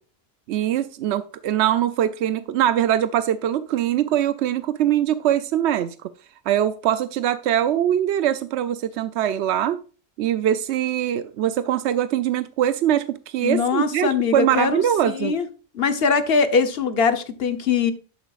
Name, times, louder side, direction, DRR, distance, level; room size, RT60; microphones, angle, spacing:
voice 1, 0.5-6.1 6.5-9.8 10.2-15.3, right 11 dB, 85° right, 0.9 m, -22 dB
voice 2, 13.4-15.5 15.7-17.9, left 5 dB, 65° left, 1.2 m, -22 dB
11.5 x 8.8 x 2.4 m
omnidirectional pair, 1.1 m